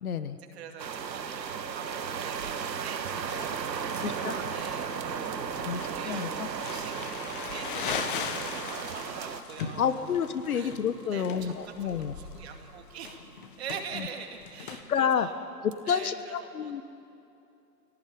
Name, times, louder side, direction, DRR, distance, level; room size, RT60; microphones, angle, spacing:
voice 1, 0.0-0.4 4.0-4.3 5.6-6.5 9.8-12.1 13.9-14.1 14.9-15.3 15.9-16.8, left 7 dB, 60° left, 11 dB, 1.3 m, -29 dB
voice 2, 0.5-10.1 10.5-10.8 11.0-13.3 13.6-15.3 15.8-16.7, right 6 dB, 40° right, 4 dB, 2.4 m, -44 dB
sound 1, 0.8-9.4, right 6 dB, 90° right, 1.6 m, -35 dB
sound 2, 1.5-13.5, right 6 dB, 20° right, 0.7 m, -49 dB
Crumpling crinkling, 3.3-14.8, left 6 dB, 30° left, 1.4 m, -39 dB
22.0 x 17.5 x 9.4 m, 2.7 s
hypercardioid pair, 160°, 49 cm